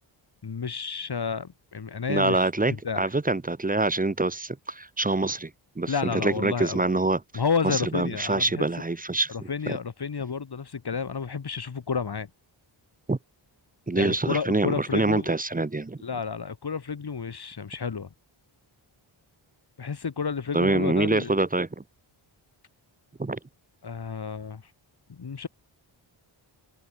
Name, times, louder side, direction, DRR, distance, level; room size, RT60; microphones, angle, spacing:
voice 1, 0.4-2.5 2.8-3.1 5.9-6.9 7.3-8.7 9.3-12.3 14.0-15.3 16.0-18.1 19.8-21.4 23.8-24.6 25.1-25.5, left 5 dB, 50° left, 2.2 m, -31 dB
voice 2, 2.1-5.5 5.8-7.2 7.6-9.8 13.1-13.2 13.9-16.0 20.5-21.8 23.2-23.4, right 2 dB, 15° right, 0.9 m, -25 dB
wide cardioid pair, 100°, 48 cm